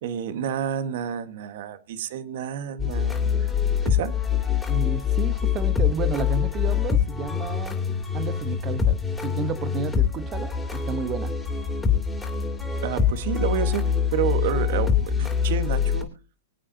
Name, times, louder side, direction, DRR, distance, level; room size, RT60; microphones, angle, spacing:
voice 1, 0.0-3.5 3.8-4.1 12.8-16.1, right 9 dB, 60° right, 1.5 m, -30 dB
sound 1, 2.8-16.0, left 7 dB, 5° left, 2.9 m, -24 dB
voice 2, 4.7-7.8 8.1-11.3, right 7 dB, 25° right, 1.1 m, -32 dB
25.0 x 8.5 x 2.8 m
hypercardioid pair, 145°, 0 cm